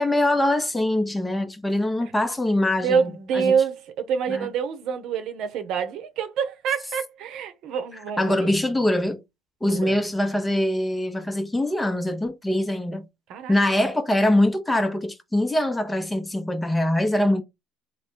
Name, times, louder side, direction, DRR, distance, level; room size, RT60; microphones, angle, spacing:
voice 1, 0.0-3.5 4.3-4.5 8.2-9.2 9.6-13.1 13.5-17.4, left 1 dB, 10° left, 0.8 m, -23 dB
voice 2, 2.8-8.5 9.6-10.0 13.3-13.6, right 6 dB, 60° right, 0.9 m, -26 dB
3.5 x 2.2 x 4.3 m
supercardioid pair, 90°, 0 cm